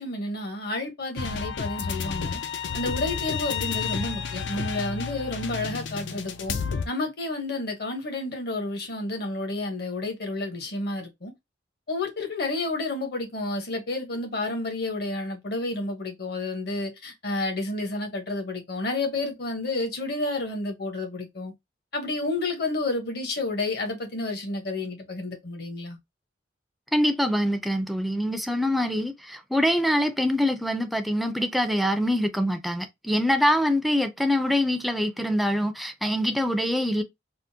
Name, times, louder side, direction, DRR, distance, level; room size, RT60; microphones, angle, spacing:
voice 1, 0.0-2.4 2.7-6.6 6.8-11.3 11.9-21.5 21.9-26.0, left 2 dB, 60° left, 1.0 m, -30 dB
sound 1, 1.2-6.9, left 6 dB, 90° left, 0.5 m, -31 dB
voice 2, 26.9-37.0, equal, ahead, 0.4 m, -24 dB
3.6 x 2.1 x 2.7 m
head